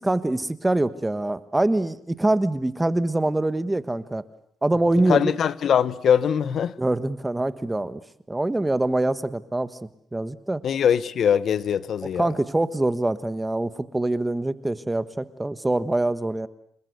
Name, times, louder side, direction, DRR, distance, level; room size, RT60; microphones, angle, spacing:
voice 1, 0.0-4.2 4.6-5.3 6.8-8.0 8.3-9.8 10.1-10.6 12.2-16.5, right 2 dB, 15° right, 1.4 m, -24 dB
voice 2, 5.1-6.7 10.6-12.3, left 8 dB, 60° left, 1.1 m, -22 dB
28.0 x 21.0 x 8.1 m
cardioid pair, 90°, 0 cm